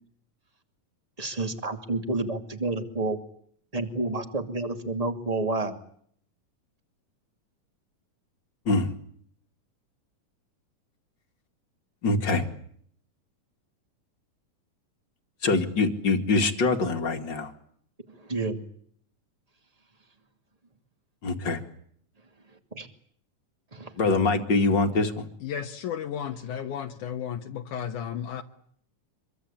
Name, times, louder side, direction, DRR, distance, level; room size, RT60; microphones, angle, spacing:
voice 1, 1.2-3.2 3.7-5.8 18.1-18.6 22.5-22.9 23.7-23.9, right 2 dB, 15° right, 7 dB, 2.1 m, -30 dB
voice 2, 12.0-12.4 15.4-17.5 21.2-21.6 24.0-25.3, left 3 dB, 35° left, 6 dB, 2.5 m, -24 dB
voice 3, 25.4-28.4, left 9 dB, 70° left, 4 dB, 2.7 m, -33 dB
25.5 x 24.0 x 8.6 m, 0.64 s
omnidirectional pair, 3.7 m